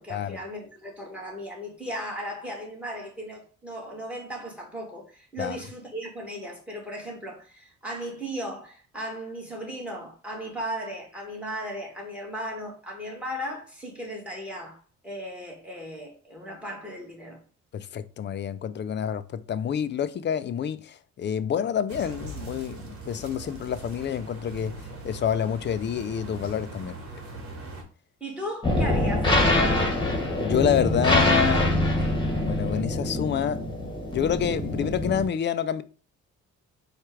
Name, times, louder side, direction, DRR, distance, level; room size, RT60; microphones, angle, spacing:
voice 1, 0.0-17.4 28.2-30.0, equal, 5° right, 1.9 m, -36 dB
voice 2, 17.7-24.8 25.0-27.0 30.4-32.0 32.4-33.6 34.1-35.8, left 9 dB, 40° left, 0.4 m, -28 dB
sound 1, 21.9-27.8, right 3 dB, 50° right, 1.3 m, -41 dB
sound 2, 28.6-35.3, left 1 dB, 15° left, 1.4 m, -24 dB
4.3 x 2.4 x 4.6 m
cardioid pair, 90°, 30 cm